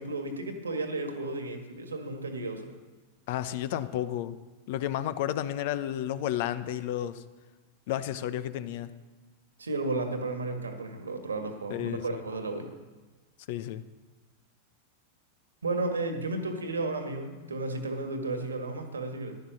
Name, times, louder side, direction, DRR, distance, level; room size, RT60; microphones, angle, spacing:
voice 1, 0.0-2.7 9.6-12.7 15.6-19.4, right 2 dB, 75° right, 6 dB, 1.9 m, -33 dB
voice 2, 3.3-4.4 4.7-7.2 7.9-8.9 11.7-12.2 13.5-13.8, left 12 dB, 50° left, 14 dB, 0.8 m, -32 dB
15.0 x 12.0 x 6.2 m, 1.3 s
figure-of-eight pair, 90°, 0 cm